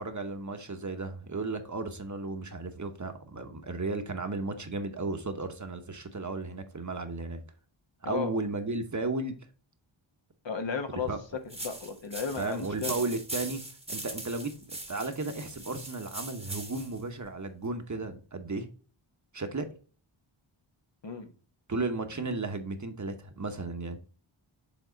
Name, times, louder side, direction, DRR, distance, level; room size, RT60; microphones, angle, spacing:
voice 1, 0.0-7.4 8.0-9.4 11.1-11.2 12.3-13.6 13.9-18.7 19.3-19.7 21.7-24.0, right 3 dB, 35° right, 1.0 m, -34 dB
voice 2, 10.4-11.1 11.6-13.0 21.0-21.3, left 5 dB, 60° left, 1.1 m, -34 dB
sound 1, 11.5-17.0, right 1 dB, 10° right, 1.0 m, -41 dB
7.2 x 3.6 x 3.8 m
wide cardioid pair, 65°, 49 cm